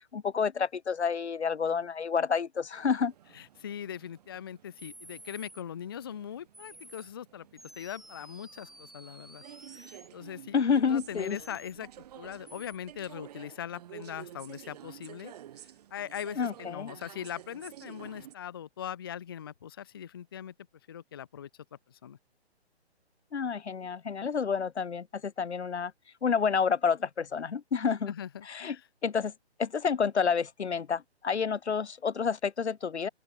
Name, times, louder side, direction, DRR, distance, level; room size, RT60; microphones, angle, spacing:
voice 1, 0.1-3.1 10.5-11.4 16.4-16.9 23.3-25.9 26.2-28.1 28.5-28.8 29.0-29.3 29.6-33.1, left 6 dB, 80° left, 0.9 m, -29 dB
sound 1, 2.7-18.3, right 11 dB, 35° right, 3.6 m, -51 dB
voice 2, 3.3-9.4 9.7-10.5 10.8-11.9 12.2-20.5 20.9-22.2 28.1-28.9, left 9 dB, 20° left, 0.5 m, -41 dB
sound 2, 4.8-5.6 6.5-7.1 7.6-10.1 11.2-11.7 12.5-12.8, right 1 dB, ahead, 1.0 m, -52 dB
open air
figure-of-eight pair, 145°, 33 cm